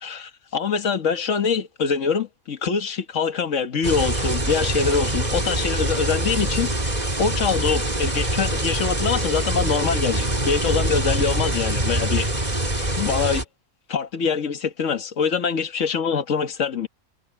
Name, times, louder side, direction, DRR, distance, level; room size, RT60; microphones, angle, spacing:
voice 1, 0.0-12.3 13.0-13.4 13.9-16.9, left 6 dB, 55° left, 1.8 m, -24 dB
sound 1, 3.8-13.4, right 1 dB, 25° right, 4.0 m, -24 dB
omnidirectional pair, 1.6 m